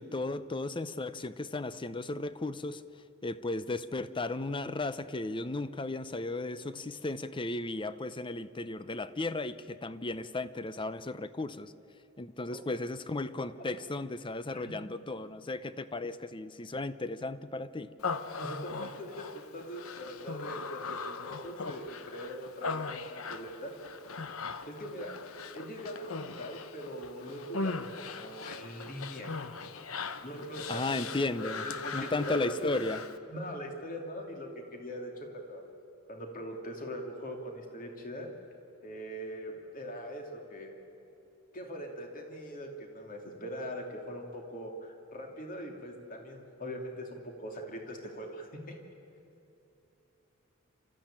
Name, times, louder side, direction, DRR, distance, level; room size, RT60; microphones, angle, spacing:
voice 1, 0.0-2.8 3.2-11.7 12.2-17.9 30.7-31.6 31.9-33.0, left 2 dB, 25° left, 14 dB, 0.6 m, -35 dB
Human voice, 18.0-33.2, left 4 dB, 85° left, 0.9 m, -40 dB
voice 2, 18.4-23.7 24.7-25.2 25.5-29.3 30.2-31.1 31.4-33.0 33.3-35.6 36.1-38.3 38.8-40.7 41.5-48.7, equal, 40° left, 2 dB, 2.7 m, -41 dB
27.5 x 14.0 x 8.9 m, 2.8 s
head